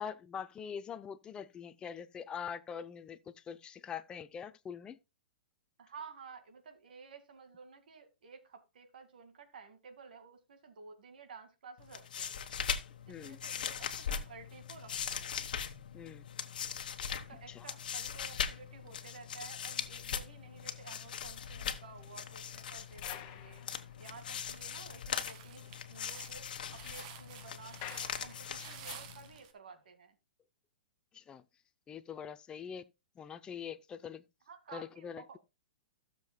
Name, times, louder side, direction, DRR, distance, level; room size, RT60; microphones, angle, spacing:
voice 1, 0.0-5.0 13.1-13.4 15.9-16.3 17.5-17.6 31.1-31.4 31.9-32.9 33.2-34.2 34.7-35.4, left 7 dB, 15° left, 0.5 m, -43 dB
voice 2, 5.8-12.4 13.1-15.4 17.1-30.2 34.5-35.4, right 5 dB, 70° right, 2.1 m, -53 dB
sound 1, 11.8-29.4, left 8 dB, 70° left, 1.2 m, -40 dB
sound 2, 20.9-24.6 24.9-25.0 25.3-25.4 25.7-29.0 29.7-29.9, left 11 dB, 40° left, 1.5 m, -53 dB
sound 3, 22.6-23.2 23.7-23.8 24.2-29.5, right 8 dB, 45° right, 1.8 m, -52 dB
16.0 x 6.8 x 2.2 m
hypercardioid pair, 125°, 5 cm